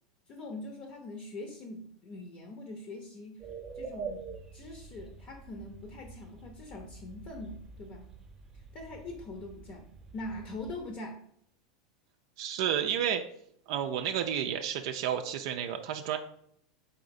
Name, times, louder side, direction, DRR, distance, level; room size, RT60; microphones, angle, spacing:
voice 1, 0.3-3.5 3.7-4.2 4.5-8.1 8.7-9.9 10.1-11.2, left 2 dB, 45° left, 3 dB, 0.7 m, -43 dB
sound 1, 3.4-10.9, right 5 dB, 20° right, 0.7 m, -46 dB
voice 2, 12.4-13.2 13.7-16.2, right 9 dB, 65° right, 5 dB, 0.3 m, -31 dB
4.0 x 3.8 x 2.6 m, 0.68 s
hypercardioid pair, 100°, 3 cm